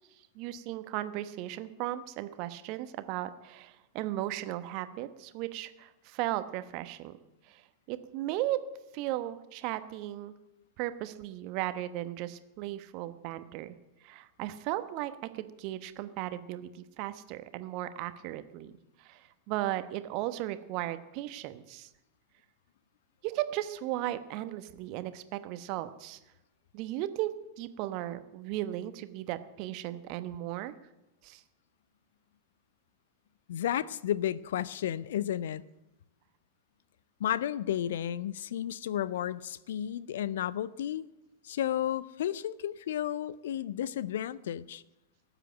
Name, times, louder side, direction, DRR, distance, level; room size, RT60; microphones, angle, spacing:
voice 1, 0.3-7.2 7.5-7.6 7.9-8.6 8.9-10.3 10.8-13.7 14.0-18.7 19.0-21.9 23.2-26.2 26.7-30.7 31.2-31.4, right 14 dB, 45° right, 1.1 m, -36 dB
voice 2, 33.5-35.6 37.2-41.1 41.4-44.8, left 11 dB, 60° left, 0.5 m, -32 dB
18.0 x 8.2 x 9.0 m
figure-of-eight pair, 90°, 0 cm